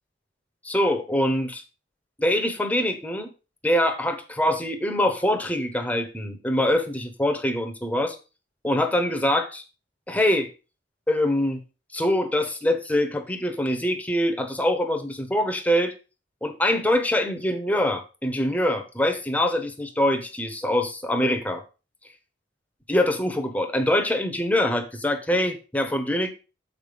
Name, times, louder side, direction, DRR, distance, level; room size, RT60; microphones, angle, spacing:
voice 1, 0.6-1.6 2.2-3.3 3.6-8.2 8.6-9.6 10.1-10.5 11.1-11.6 11.9-15.9 16.4-21.6 22.9-26.3, left 1 dB, 10° left, 6 dB, 0.9 m, -24 dB
6.8 x 4.3 x 5.2 m, 0.32 s
head